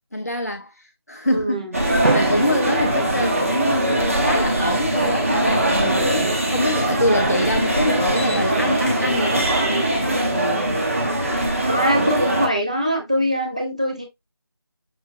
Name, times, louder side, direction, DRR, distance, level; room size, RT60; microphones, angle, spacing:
voice 1, 0.1-10.8, left 1 dB, 35° left, 0.6 m, -26 dB
voice 2, 1.2-1.8 11.7-14.0, equal, 15° right, 0.5 m, -22 dB
sound 1, 1.7-12.5, right 1 dB, 35° right, 1.0 m, -21 dB
Drum, 2.0-4.1, right 3 dB, 80° right, 0.7 m, -28 dB
sound 2, 4.5-11.1, equal, 50° right, 1.3 m, -37 dB
6.2 x 2.4 x 2.6 m
figure-of-eight pair, 170°, 14 cm